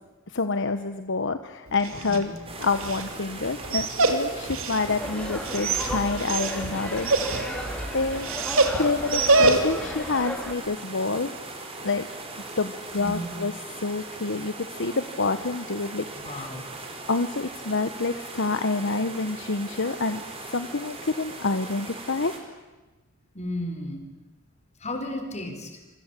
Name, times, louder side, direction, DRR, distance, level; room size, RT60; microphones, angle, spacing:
voice 1, 0.3-2.3 2.6-7.1 7.9-8.3 8.8-11.3 11.8-12.1 12.6-16.0 17.1-20.2 20.5-22.3, left 3 dB, 65° left, 9 dB, 1.2 m, -27 dB
Dog, 1.7-10.0, right 3 dB, 75° right, 3.1 m, -26 dB
sound 1, 2.5-22.4, right 2 dB, 30° right, 4.9 m, -40 dB
sound 2, 4.8-10.5, equal, 5° left, 4.8 m, -34 dB
voice 2, 12.9-13.3 16.1-16.7 23.3-24.1 24.8-25.8, left 1 dB, 35° left, 5 dB, 4.9 m, -34 dB
27.5 x 25.0 x 8.5 m, 1.2 s
head